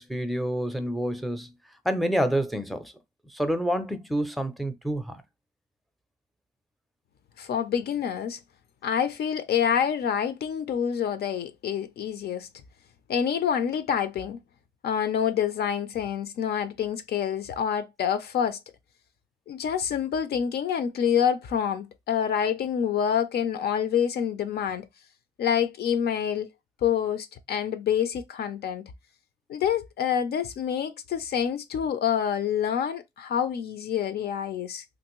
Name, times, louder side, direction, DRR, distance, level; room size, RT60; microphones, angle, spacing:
voice 1, 0.0-1.5 1.8-2.9 3.3-5.2, equal, ahead, 0.4 m, -28 dB
voice 2, 7.4-8.4 8.8-12.5 13.1-14.4 14.8-18.6 19.5-24.9 25.4-26.5 26.8-28.9 29.5-34.8, left 8 dB, 65° left, 0.4 m, -27 dB
3.0 x 2.6 x 2.9 m
cardioid pair, 115°, 18 cm